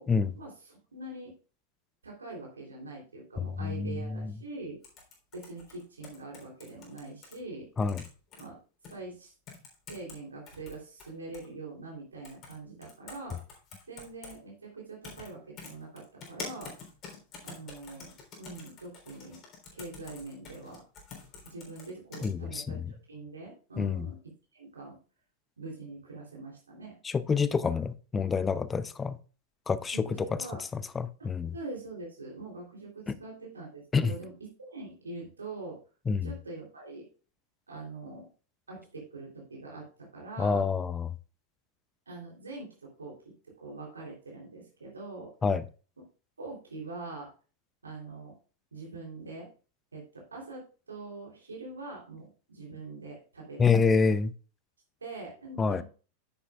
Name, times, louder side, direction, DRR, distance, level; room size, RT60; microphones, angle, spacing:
voice 1, 0.4-1.3 2.0-4.8 5.3-7.7 8.4-8.6 8.9-9.3 9.9-13.4 13.9-16.7 17.4-19.4 19.7-20.8 21.4-24.2 24.5-25.0 25.6-26.9 29.9-30.6 31.2-34.3 34.6-35.8 36.2-37.1 37.7-38.3 38.7-40.6 42.1-43.2 43.6-45.3 46.4-47.3 47.8-48.3 48.7-49.5 49.9-53.7 55.0-55.8, right 3 dB, 75° right, 3.2 m, -43 dB
voice 2, 3.6-4.3 7.8-8.0 22.2-22.8 23.8-24.1 27.0-29.1 29.7-30.1 30.7-31.5 33.1-33.2 33.9-34.1 36.1-36.3 40.4-41.1 45.4-45.6 53.6-54.3 55.6-55.8, left 5 dB, 15° left, 0.6 m, -27 dB
sound 1, 4.8-7.3 7.8-8.4 8.8-8.9 9.5-10.2 10.5-11.5 12.2-12.5 12.8-14.3 15.0-15.3 15.6-22.3, left 5 dB, 35° left, 3.6 m, -46 dB
10.0 x 9.2 x 2.4 m
figure-of-eight pair, 90°, 0 cm